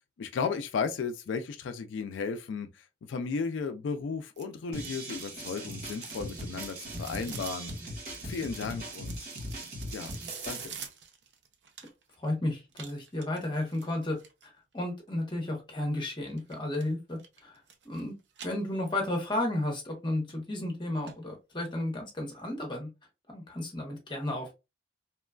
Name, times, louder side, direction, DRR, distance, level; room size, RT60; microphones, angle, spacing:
voice 1, 0.2-7.7 8.2-9.3 9.9-10.1 10.5-10.8, left 5 dB, 90° left, 0.3 m, -34 dB
sound 1, 4.4-12.2 12.7-14.5 16.4-16.9 17.2-18.0 18.3-19.2 19.6-19.7 20.3-20.4 20.7-20.8 21.1-21.2 21.5-21.6, right 7 dB, 70° right, 0.6 m, -47 dB
sound 2, 4.7-10.6, right 1 dB, 50° right, 1.5 m, -40 dB
voice 2, 12.2-14.2 14.4-18.1 18.4-22.9 23.3-24.5, left 1 dB, 25° left, 0.8 m, -33 dB
2.9 x 2.2 x 2.3 m
head